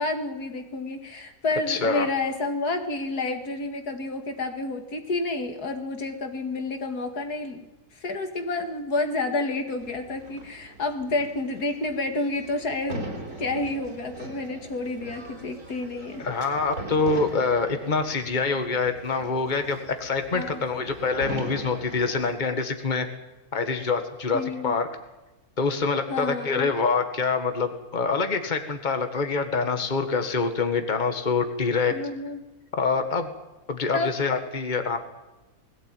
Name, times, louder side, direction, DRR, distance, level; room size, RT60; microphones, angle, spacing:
voice 1, 0.0-7.7 8.0-13.0 13.4-16.3 20.3-20.6 24.3-24.7 26.1-26.7 31.9-32.4 33.9-34.1, left 2 dB, 80° left, 6 dB, 2.6 m, -29 dB
voice 2, 1.7-2.1 16.2-23.1 23.5-24.9 25.6-31.9 32.8-33.3 33.7-35.0, left 4 dB, 30° left, 7 dB, 1.8 m, -25 dB
sound 1, 9.8-22.3, right 2 dB, 60° right, 3.9 m, -40 dB
20.5 x 16.5 x 9.1 m, 1.1 s
omnidirectional pair, 1.6 m